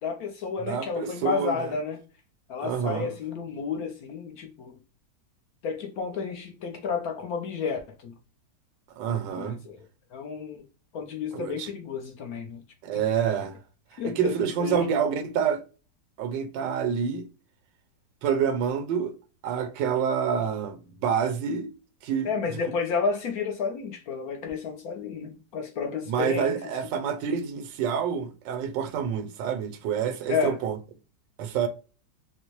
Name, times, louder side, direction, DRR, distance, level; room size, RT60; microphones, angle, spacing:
voice 1, 0.0-2.0 2.5-4.8 5.6-8.1 9.3-9.8 10.1-10.7 10.9-12.6 14.0-14.8 22.2-26.6 30.3-30.6, left 5 dB, 65° left, 1.0 m, -31 dB
voice 2, 0.7-1.7 2.6-3.1 9.0-9.6 11.3-11.7 12.8-13.6 14.0-15.6 16.2-17.3 18.2-19.1 19.4-21.7 22.0-22.3 26.1-30.8 31.4-31.7, right 7 dB, 85° right, 1.3 m, -27 dB
4.2 x 2.0 x 3.0 m
omnidirectional pair, 1.9 m